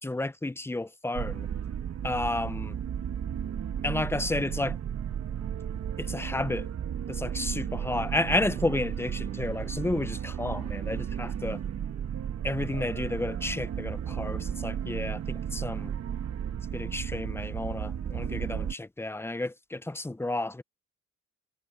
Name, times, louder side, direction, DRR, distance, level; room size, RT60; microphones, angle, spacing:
voice 1, 0.0-1.5 2.0-2.8 3.8-4.8 6.0-6.7 7.1-11.6 12.4-15.9 16.7-20.6, left 2 dB, 10° left, 0.7 m, -31 dB
sound 1, 1.1-18.7, right 8 dB, 55° right, 1.7 m, -34 dB
cardioid pair, 90°, 30 cm